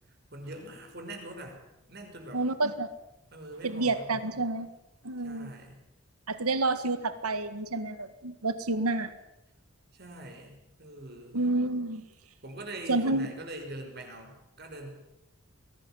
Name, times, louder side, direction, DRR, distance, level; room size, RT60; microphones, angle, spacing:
voice 1, 0.3-1.6 1.9-2.4 3.3-4.3 5.2-5.8 9.9-11.4 12.4-14.9, right 1 dB, 45° right, 3 dB, 6.0 m, -43 dB
voice 2, 2.3-2.9 3.6-4.7 5.0-5.5 6.3-9.1 11.3-12.0 12.9-13.3, right 2 dB, 90° right, 12 dB, 1.8 m, -29 dB
22.5 x 17.5 x 9.2 m, 0.87 s
head